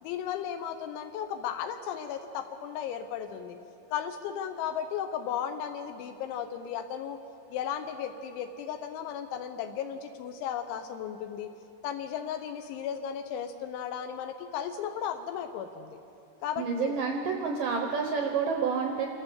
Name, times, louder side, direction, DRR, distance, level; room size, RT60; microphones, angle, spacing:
voice 1, 0.0-3.6 3.9-7.2 7.5-11.5 11.8-16.0 16.4-16.9, left 8 dB, 80° left, 6 dB, 3.1 m, -35 dB
voice 2, 16.6-19.1, right 5 dB, 75° right, 2 dB, 2.0 m, -29 dB
27.5 x 13.5 x 7.2 m, 2.7 s
omnidirectional pair, 5.4 m